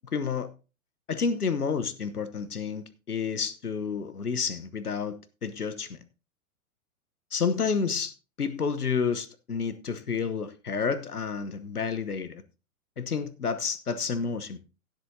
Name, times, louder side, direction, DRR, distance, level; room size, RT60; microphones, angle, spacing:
voice 1, 0.1-0.5 1.1-6.0 7.3-8.1 8.4-12.4 13.0-14.6, left 5 dB, 90° left, 1.1 m, -30 dB
17.0 x 7.8 x 2.7 m
figure-of-eight pair, 110°, 44 cm